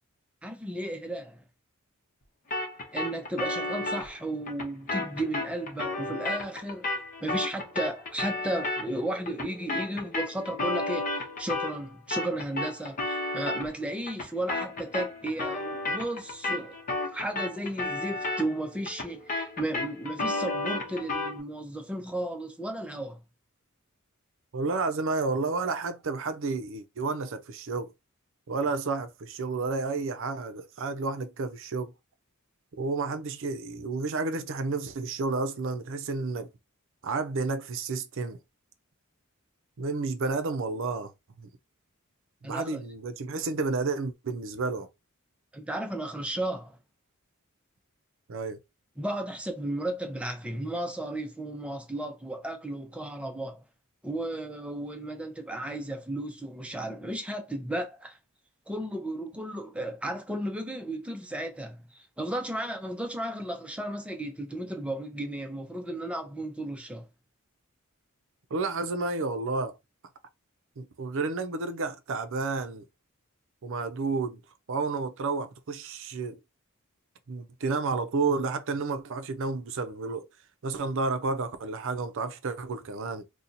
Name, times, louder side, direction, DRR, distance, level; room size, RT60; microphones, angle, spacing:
voice 1, 0.4-1.4 2.9-6.9 7.2-16.8 17.1-23.2 42.4-42.8 45.5-46.8 49.0-53.6 54.0-58.2 58.7-67.1, right 1 dB, 5° right, 0.6 m, -34 dB
sound 1, 2.5-11.8 12.1-21.4, left 2 dB, 40° left, 0.9 m, -33 dB
voice 2, 24.5-27.9 28.5-31.9 32.7-36.5 37.0-38.4 39.8-41.1 41.4-41.5 42.5-44.9 48.3-48.6 68.5-69.8 70.8-72.8 73.6-74.4 74.7-76.4 77.3-80.3 80.6-83.2, right 3 dB, 65° right, 0.5 m, -31 dB
2.8 x 2.3 x 3.9 m
head